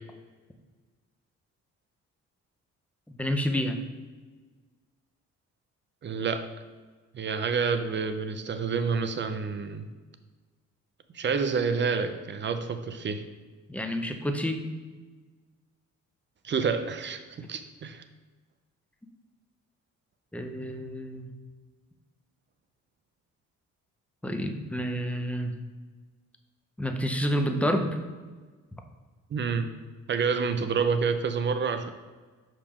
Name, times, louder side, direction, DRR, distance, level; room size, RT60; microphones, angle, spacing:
voice 1, 3.1-3.8 13.7-14.7 20.3-21.3 24.2-25.6 26.8-28.0, equal, 5° left, 5 dB, 0.6 m, -29 dB
voice 2, 6.0-6.5 7.1-9.9 11.1-13.2 16.4-18.0 29.3-29.7 30.1-31.9, right 5 dB, 40° right, 9 dB, 0.6 m, -28 dB
5.6 x 5.1 x 3.6 m, 1.4 s
cardioid pair, 90°, 30 cm